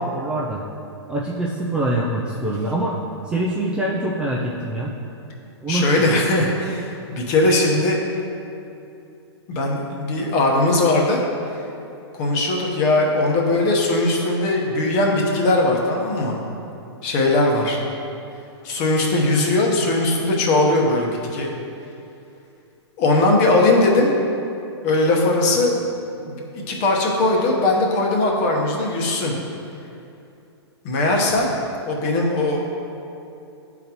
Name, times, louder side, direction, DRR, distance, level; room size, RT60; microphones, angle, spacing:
voice 1, 0.1-0.6 1.1-3.0 3.2-4.9 5.6-6.0, right 1 dB, 5° right, -5 dB, 0.3 m, -24 dB
voice 2, 5.7-8.0 9.5-11.2 12.2-16.4 17.0-17.8 18.6-21.5 23.0-24.1 24.8-25.8 26.2-29.3 30.8-31.5 31.9-32.6, left 2 dB, 35° left, -1 dB, 1.0 m, -19 dB
10.5 x 3.9 x 2.9 m, 2.7 s
hypercardioid pair, 140°, 14 cm